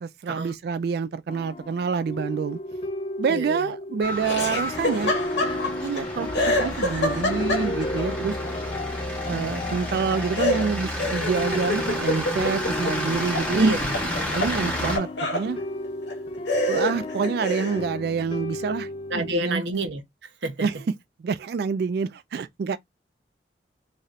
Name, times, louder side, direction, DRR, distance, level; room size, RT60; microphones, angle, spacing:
voice 1, 0.0-2.6 3.2-5.2 5.8-8.4 9.3-13.7 14.3-15.6 16.7-19.6 20.6-20.8 21.2-22.8, right 5 dB, 60° right, 0.3 m, -27 dB
sound 1, 1.3-19.3, left 1 dB, 30° left, 0.4 m, -34 dB
voice 2, 3.3-3.7 13.5-13.9 14.2-14.5 19.1-20.7, right 2 dB, 85° right, 0.7 m, -27 dB
sound 2, 4.0-15.0, equal, 5° left, 0.9 m, -31 dB
Laughter, 4.2-6.0 6.3-8.0 10.4-13.5 13.8-15.5 16.1-16.2 16.5-17.8, left 1 dB, 85° left, 1.0 m, -27 dB
3.1 x 2.7 x 2.4 m
head